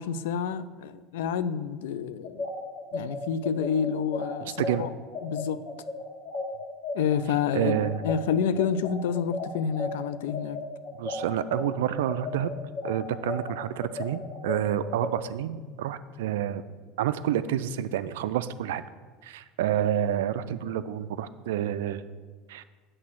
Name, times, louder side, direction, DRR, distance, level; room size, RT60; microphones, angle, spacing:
voice 1, 0.0-2.5 2.9-4.9 5.2-5.7 6.9-7.8 8.0-10.6, left 7 dB, 65° left, 0.3 m, -29 dB
sound 1, 2.2-11.6 12.0-15.1, left 3 dB, 45° left, 1.7 m, -34 dB
voice 2, 7.5-8.0 11.0-12.5 12.8-16.6 17.0-18.8 19.2-22.0 22.5-22.6, right 11 dB, 65° right, 0.3 m, -29 dB
7.6 x 4.1 x 6.1 m
figure-of-eight pair, 70°, 0 cm